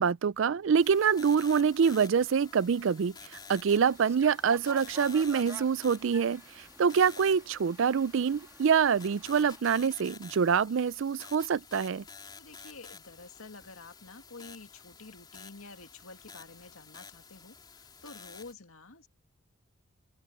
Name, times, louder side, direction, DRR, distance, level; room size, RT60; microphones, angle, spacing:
voice 1, 0.0-12.0, right 6 dB, 65° right, 0.4 m, -26 dB
sound 1, 0.8-18.5, left 5 dB, 20° left, 4.0 m, -51 dB
sound 2, 3.7-9.6, right 2 dB, 15° right, 1.5 m, -50 dB
voice 2, 12.4-19.1, left 3 dB, 85° left, 2.2 m, -49 dB
open air
head